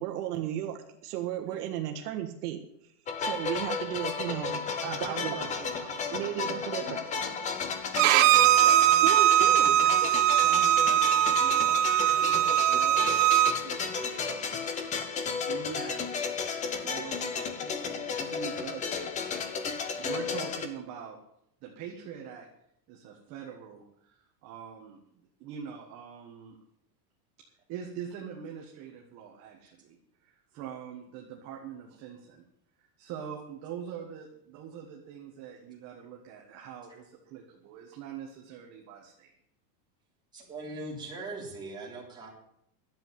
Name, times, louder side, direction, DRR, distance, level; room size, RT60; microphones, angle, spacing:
voice 1, 0.0-2.6 3.2-4.6 4.9-5.4 6.1-7.0 8.6-8.7 9.0-9.9, right 12 dB, 65° right, 4 dB, 1.6 m, -34 dB
sound 1, 3.1-20.7, left 5 dB, 15° left, 0.7 m, -33 dB
voice 2, 4.8-6.7 7.1-7.8 8.1-9.1 9.8-10.0 10.3-15.0 15.5-16.1 16.7-19.1 20.0-21.2 21.6-22.5 22.9-25.0 25.4-26.6 27.7-32.4 32.8-39.3, right 7 dB, 35° right, 0 dB, 1.7 m, -43 dB
Bowed string instrument, 8.0-13.5, right 13 dB, 50° right, 0.7 m, -21 dB
voice 3, 40.3-42.3, right 2 dB, 10° right, -5 dB, 3.4 m, -40 dB
11.5 x 7.9 x 9.3 m, 0.73 s
supercardioid pair, 175°, 49 cm